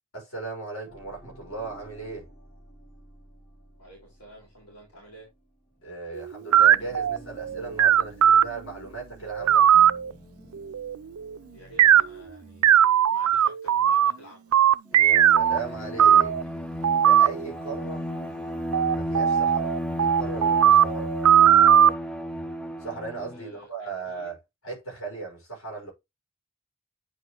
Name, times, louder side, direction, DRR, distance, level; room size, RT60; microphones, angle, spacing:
voice 1, 0.1-2.3 5.8-9.7 14.9-16.3 17.0-18.0 18.9-19.7 20.0-21.1 22.8-24.4 24.6-25.9, right 4 dB, 70° left, 5.7 m, -37 dB
sound 1, 0.8-6.1 6.4-12.7, right 1 dB, 40° left, 3.3 m, -51 dB
voice 2, 3.8-5.3 11.5-14.6 23.3-24.3, right 1 dB, 85° left, 4.9 m, -50 dB
sound 2, 6.2-8.4 9.3-10.1 10.7-11.4 11.8-12.0 12.6-14.1 14.5-15.6 16.0-16.4 16.8-17.3 18.7-21.9, right 10 dB, 80° right, 0.4 m, -18 dB
Bowed string instrument, 14.9-23.4, equal, 5° left, 0.3 m, -33 dB
9.4 x 5.3 x 3.0 m
head